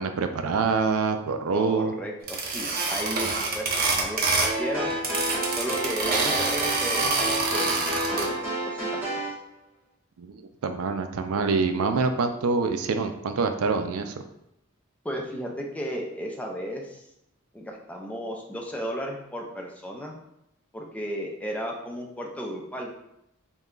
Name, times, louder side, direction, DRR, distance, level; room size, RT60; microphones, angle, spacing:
voice 1, 0.0-1.9 10.2-10.3 10.6-14.1, right 4 dB, 85° right, 7 dB, 0.4 m, -25 dB
voice 2, 1.5-4.2 4.6-5.0 5.5-8.4 8.6-9.3 15.0-17.0 17.5-20.2 20.7-22.9, equal, 5° left, 0 dB, 0.5 m, -34 dB
sound 1, 2.3-4.6 4.9-8.3, right 3 dB, 45° right, 0.7 m, -26 dB
sound 2, 4.4-9.3, right 1 dB, 10° right, 1.2 m, -30 dB
4.0 x 2.2 x 3.7 m, 0.81 s
head